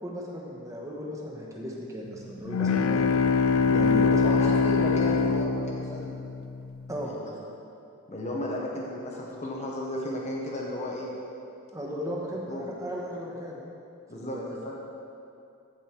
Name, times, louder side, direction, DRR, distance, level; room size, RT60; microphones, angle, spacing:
voice 1, 0.0-3.2 3.7-4.4 6.9-7.1 11.7-13.6 14.2-14.7, equal, 15° right, -2 dB, 1.2 m, -35 dB
sound 1, 2.5-6.5, left 5 dB, 70° left, 0.4 m, -23 dB
voice 2, 4.2-6.2 7.0-7.3 8.1-11.1 12.5-12.7 14.1-14.4 14.6-14.7, left 1 dB, 30° left, -3 dB, 1.2 m, -34 dB
14.5 x 5.5 x 4.6 m, 2.6 s
head